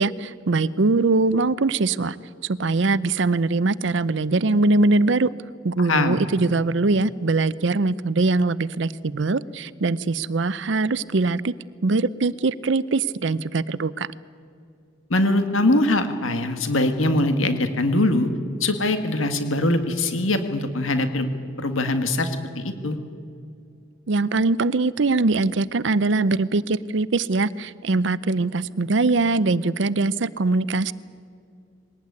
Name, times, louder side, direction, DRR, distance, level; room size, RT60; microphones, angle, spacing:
voice 1, 0.0-2.2 2.4-5.3 5.6-11.5 11.8-14.1 24.1-30.9, right 3 dB, 65° right, 18 dB, 0.6 m, -22 dB
voice 2, 15.1-18.3 18.6-21.3 21.6-23.0, left 2 dB, 90° left, 8 dB, 1.7 m, -22 dB
21.5 x 18.5 x 9.6 m, 2.4 s
head